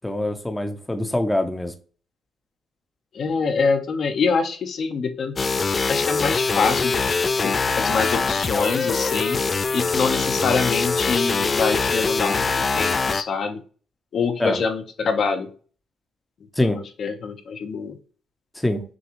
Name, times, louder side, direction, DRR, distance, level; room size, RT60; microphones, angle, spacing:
voice 1, 0.0-1.7 14.4-14.6 16.6-16.8 18.6-18.8, left 1 dB, 10° left, 6 dB, 0.7 m, -24 dB
voice 2, 3.1-5.4 5.9-12.5 12.8-13.6 14.1-15.5 16.6-18.0, left 5 dB, 55° left, 5 dB, 0.8 m, -25 dB
sound 1, 5.4-13.2, left 4 dB, 35° left, 0.4 m, -23 dB
6.2 x 2.3 x 2.9 m, 0.40 s
cardioid pair, 90°, 0 cm